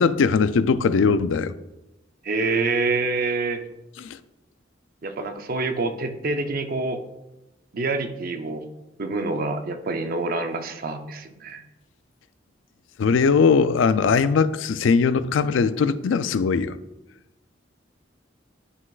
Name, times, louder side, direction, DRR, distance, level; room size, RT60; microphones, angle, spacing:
voice 1, 0.0-1.5 4.0-4.2 13.0-16.8, left 5 dB, 80° left, 0.4 m, -20 dB
voice 2, 2.2-3.6 5.0-7.0 7.7-8.6 9.0-11.6, right 3 dB, 50° right, 0.6 m, -26 dB
9.7 x 6.0 x 2.4 m
head